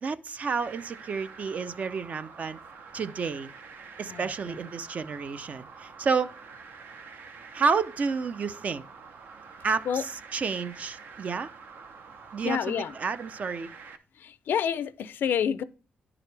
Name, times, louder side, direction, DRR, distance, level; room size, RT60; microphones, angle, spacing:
voice 1, 0.0-2.6 2.9-3.5 4.0-6.3 7.5-8.8 9.6-11.5 12.3-13.7, right 5 dB, 45° right, 0.5 m, -30 dB
sound 1, 0.6-14.0, right 5 dB, 70° right, 0.8 m, -47 dB
voice 2, 12.4-12.9 14.2-15.6, left 8 dB, 75° left, 0.5 m, -28 dB
10.5 x 4.9 x 3.3 m
cardioid pair, 130°, 3 cm